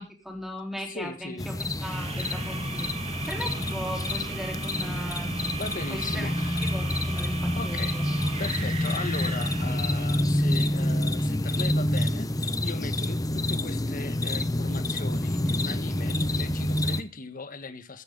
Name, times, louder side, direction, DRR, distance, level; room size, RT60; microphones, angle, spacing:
voice 1, 0.0-1.6 1.8-6.3 6.6-8.0, equal, ahead, 4.2 m, -38 dB
voice 2, 0.9-1.5 5.5-6.7 7.6-8.0 8.4-18.0, left 3 dB, 45° left, 1.6 m, -38 dB
sound 1, 1.4-17.0, left 1 dB, 20° left, 0.9 m, -28 dB
sound 2, 1.8-10.3, right 4 dB, 30° right, 2.4 m, -38 dB
14.5 x 14.5 x 4.0 m
head